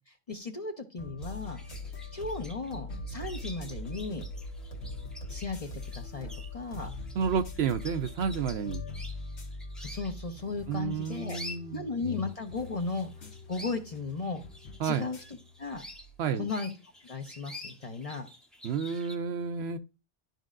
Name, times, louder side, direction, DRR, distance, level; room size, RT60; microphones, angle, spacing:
voice 1, 0.1-1.6 2.1-4.3 5.3-6.9 9.8-11.4 11.7-14.4 14.8-15.8 16.3-16.7 17.0-18.3, left 3 dB, 35° left, 0.7 m, -36 dB
sound 1, 1.0-16.2, left 1 dB, 65° left, 1.3 m, -44 dB
sound 2, 1.2-9.2, left 4 dB, 80° left, 2.1 m, -43 dB
sound 3, 1.2-19.2, left 1 dB, ahead, 0.8 m, -49 dB
voice 2, 7.2-8.8 10.7-11.8 14.8-15.0 16.2-16.5 18.6-19.8, right 6 dB, 65° right, 0.8 m, -30 dB
12.0 x 5.1 x 2.4 m
omnidirectional pair, 1.2 m